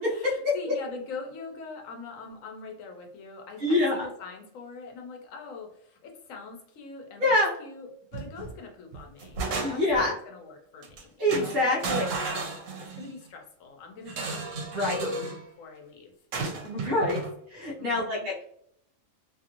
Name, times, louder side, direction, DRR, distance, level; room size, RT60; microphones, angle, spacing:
voice 1, 0.0-15.2 15.6-16.1 17.0-17.2 17.8-18.3, left 4 dB, 85° left, 2 dB, 1.1 m, -43 dB
voice 2, 3.6-4.1 7.2-7.5 9.6-10.1 11.2-12.0 14.7-15.1 16.6-17.2 17.5-18.4, left 1 dB, 45° right, -6 dB, 0.8 m, -25 dB
sound 1, 8.1-8.5 8.9-10.0 10.8-11.0 11.3-13.1 14.1-15.4 16.3-17.3, right 3 dB, 80° right, 1.1 m, -33 dB
2.8 x 2.5 x 2.8 m, 0.69 s
omnidirectional pair, 1.3 m